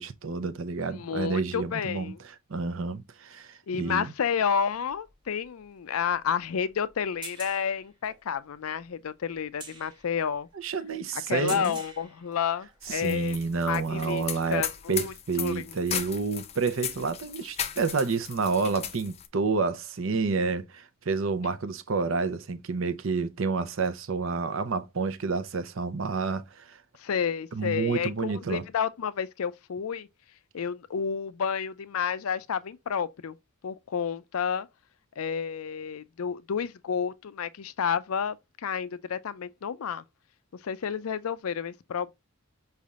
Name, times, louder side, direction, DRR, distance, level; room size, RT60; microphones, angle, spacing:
voice 1, 0.0-2.2 2.5-4.1 10.5-11.7 12.9-26.8 27.5-28.6, right 4 dB, 65° right, 0.6 m, -29 dB
voice 2, 0.9-2.2 3.7-10.5 11.1-13.4 13.7-14.2 14.5-16.0 27.0-30.1 30.5-33.4 33.6-34.7 35.2-40.0 40.6-42.1, left 7 dB, 90° left, 0.5 m, -30 dB
sound 1, 4.7-13.0 13.5-14.3 15.6-15.7, right 3 dB, 20° right, 1.3 m, -47 dB
sound 2, 12.8-19.3, left 9 dB, 30° left, 0.5 m, -36 dB
5.4 x 3.4 x 2.3 m
head